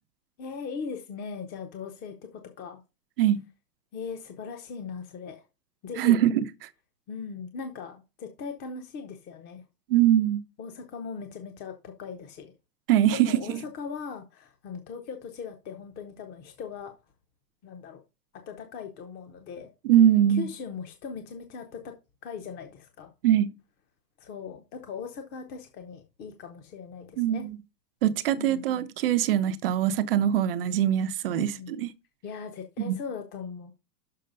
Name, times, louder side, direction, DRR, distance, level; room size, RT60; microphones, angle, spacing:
voice 1, 0.4-2.8 3.9-5.4 5.8-6.2 7.1-9.6 10.6-12.5 13.1-16.9 17.6-18.0 18.3-19.7 20.3-21.9 22.2-23.1 24.2-27.5 28.4-28.8 31.3-31.7 32.2-33.7, left 5 dB, 20° left, 0.7 m, -39 dB
voice 2, 6.0-6.4 9.9-10.4 12.9-13.3 19.8-20.5 23.2-23.5 27.2-27.6 28.0-31.5 31.8-31.9 32.9-33.0, right 11 dB, 40° right, 0.5 m, -22 dB
6.6 x 4.9 x 5.3 m
hypercardioid pair, 135°, 48 cm